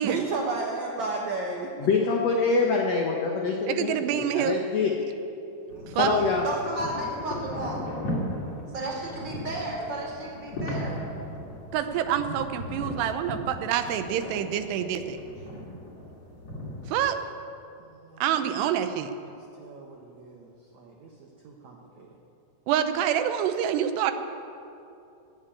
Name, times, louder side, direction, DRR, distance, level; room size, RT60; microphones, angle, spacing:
voice 1, 0.0-1.7 17.8-18.2 19.2-22.1, right 3 dB, 70° right, 0 dB, 1.7 m, -34 dB
voice 2, 1.8-5.0 5.9-6.5, left 4 dB, 85° left, 0 dB, 1.4 m, -25 dB
voice 3, 3.7-4.6 6.0-6.2 11.7-15.2 16.9-17.2 18.2-19.1 22.7-24.1, right 10 dB, 90° right, 9 dB, 3.0 m, -26 dB
sound 1, 5.7-17.0, left 1 dB, 45° left, 2.7 m, -37 dB
voice 4, 5.7-7.9 8.7-11.0, right 1 dB, 30° right, -2 dB, 2.8 m, -34 dB
18.0 x 7.6 x 8.6 m, 2.7 s
omnidirectional pair, 4.7 m